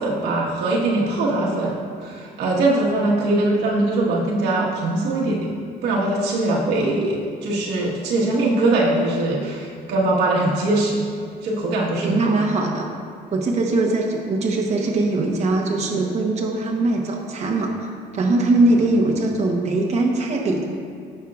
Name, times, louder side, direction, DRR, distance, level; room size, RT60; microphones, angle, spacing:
voice 1, 0.0-5.5 5.8-11.1 11.4-12.3, right 2 dB, 80° right, -4 dB, 1.5 m, -21 dB
voice 2, 12.0-12.9 13.3-20.7, right 2 dB, 40° right, -1 dB, 1.0 m, -21 dB
15.0 x 5.5 x 2.5 m, 2.3 s
cardioid pair, 110°, 17 cm